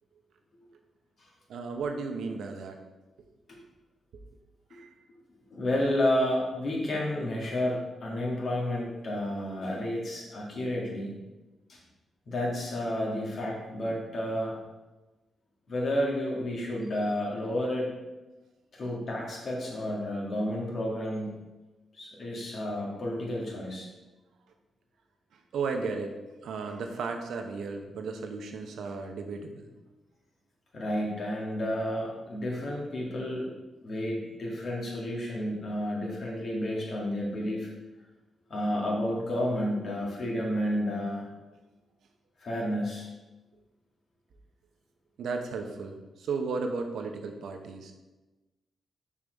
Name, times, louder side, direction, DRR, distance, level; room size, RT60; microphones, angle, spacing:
voice 1, 1.5-2.8 4.1-4.2 4.7-4.9 25.3-29.7 45.2-47.9, right 4 dB, 80° right, 4 dB, 0.7 m, -35 dB
voice 2, 5.5-11.1 11.7-11.8 12.3-14.6 15.7-17.9 18.7-21.4 21.9-23.9 30.7-33.5 33.8-37.7 38.5-41.3 42.4-43.1, left 1 dB, 60° left, -3 dB, 2.0 m, -31 dB
5.5 x 4.8 x 4.5 m, 1.1 s
supercardioid pair, 50°, 0 cm